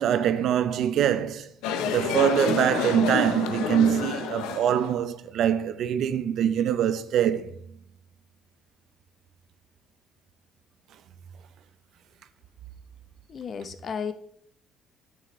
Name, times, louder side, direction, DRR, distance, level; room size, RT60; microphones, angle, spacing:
voice 1, 0.0-1.5 1.8-7.5, right 9 dB, 65° right, 0.6 m, -24 dB
sound 1, 1.6-4.9, left 6 dB, 85° left, 0.7 m, -29 dB
voice 2, 13.3-14.1, left 6 dB, 50° left, 0.7 m, -33 dB
9.3 x 6.9 x 3.1 m
supercardioid pair, 70°, 0 cm